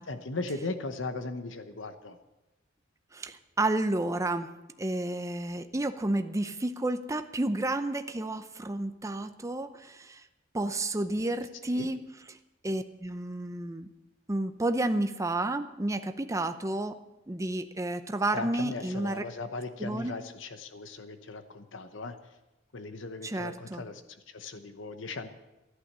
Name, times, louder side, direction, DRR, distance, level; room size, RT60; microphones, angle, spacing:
voice 1, 0.1-2.2 11.7-11.9 18.3-22.2 22.7-25.3, left 3 dB, 70° left, 9 dB, 1.0 m, -38 dB
voice 2, 3.1-4.5 4.8-10.2 10.5-12.0 12.6-13.9 14.3-17.0 17.3-19.2 19.8-20.1 23.2-23.8, right 2 dB, 15° right, 9 dB, 0.6 m, -31 dB
13.0 x 11.5 x 6.7 m, 1.0 s
head